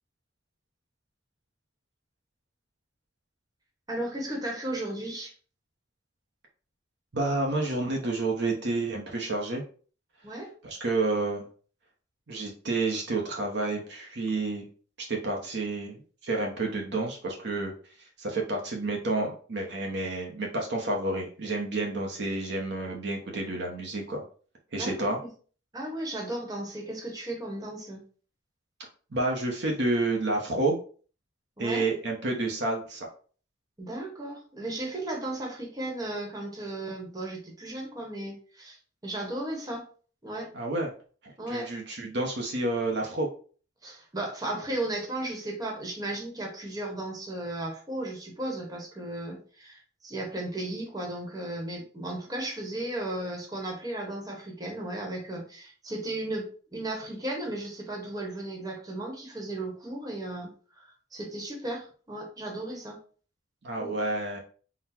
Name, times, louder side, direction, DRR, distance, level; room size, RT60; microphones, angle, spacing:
voice 1, 3.9-5.3 10.2-10.5 24.7-25.1 25.7-28.0 31.6-31.9 33.8-38.8 39.0-39.8 40.2-40.5 41.4-41.7 43.8-60.5 60.8-63.0 63.8-63.9, right 1 dB, 20° right, -1 dB, 1.1 m, -35 dB
voice 2, 7.1-9.6 10.6-11.5 12.3-14.7 15.0-17.7 18.2-24.2 24.7-25.2 29.1-30.7 31.6-33.1 40.5-40.9 41.2-43.3 63.6-64.4, right 2 dB, 60° right, 0 dB, 0.8 m, -29 dB
4.0 x 2.2 x 4.2 m, 0.41 s
head